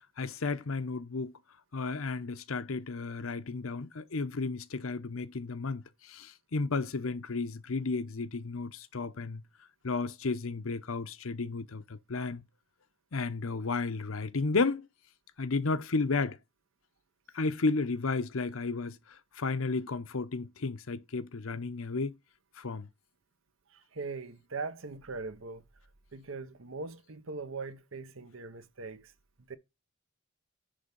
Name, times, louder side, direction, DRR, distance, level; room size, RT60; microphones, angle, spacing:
voice 1, 0.2-1.3 1.7-9.4 9.8-12.4 13.1-14.9 15.4-16.4 17.3-22.1 22.6-22.9, left 3 dB, 75° left, 0.8 m, -33 dB
voice 2, 23.7-25.6 26.1-29.1 29.5-29.6, right 4 dB, 70° right, 0.9 m, -41 dB
10.0 x 3.5 x 5.3 m
head